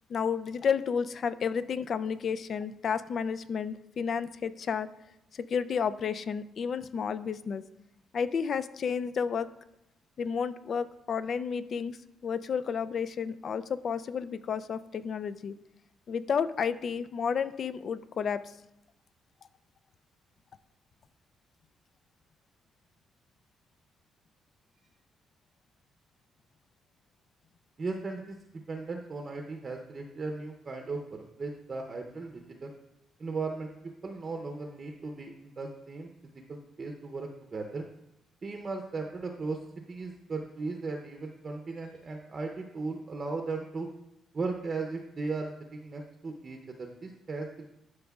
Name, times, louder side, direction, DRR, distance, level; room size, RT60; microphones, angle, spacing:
voice 1, 0.1-4.9 5.3-7.6 8.1-9.5 10.2-12.0 12.2-15.5 16.1-18.5, left 6 dB, 55° left, 14 dB, 0.3 m, -31 dB
voice 2, 27.8-28.4 28.7-32.7 33.2-33.7 34.0-36.1 36.5-37.8 38.4-39.6 39.9-43.9 44.3-47.6, right 3 dB, 35° right, 3 dB, 0.6 m, -37 dB
11.5 x 5.1 x 2.3 m, 0.88 s
cardioid pair, 90°, 0 cm